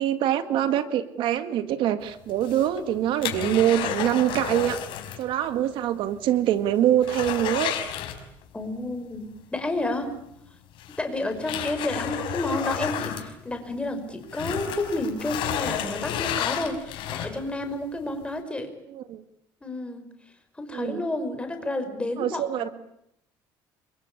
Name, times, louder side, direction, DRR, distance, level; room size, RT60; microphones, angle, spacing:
voice 1, 0.0-4.8 5.2-7.7 18.9-19.2 20.7-21.1 22.2-22.7, right 11 dB, 70° right, 10 dB, 1.9 m, -24 dB
sound 1, 2.3-5.3 5.6-5.7 6.1-6.2 6.6-8.6 10.0-10.1 10.8-13.9 14.2-17.6 18.1-18.2, left 10 dB, 70° left, 5.4 m, -31 dB
voice 2, 8.5-10.1 11.0-18.7 19.6-20.1 20.6-22.7, left 2 dB, 10° left, 7 dB, 5.4 m, -30 dB
29.5 x 23.5 x 8.6 m, 0.76 s
cardioid pair, 125°, 9 cm